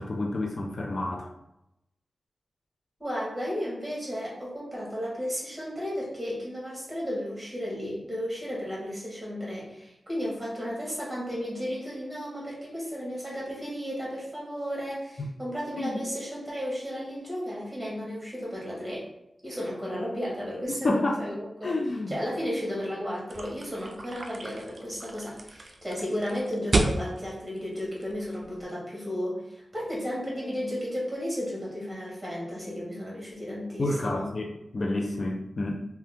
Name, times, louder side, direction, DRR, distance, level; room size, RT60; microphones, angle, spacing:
voice 1, 0.0-1.3 15.2-15.3 15.8-16.0 20.7-21.2 21.6-22.2 33.8-35.8, left 2 dB, 45° left, 1 dB, 0.4 m, -29 dB
voice 2, 3.0-19.0 19.4-21.7 22.1-34.3, equal, 10° right, -5 dB, 1.3 m, -34 dB
sound 1, 23.3-28.6, right 2 dB, 50° right, 0.3 m, -32 dB
2.8 x 2.2 x 3.4 m, 0.85 s
wide cardioid pair, 125°, 0 cm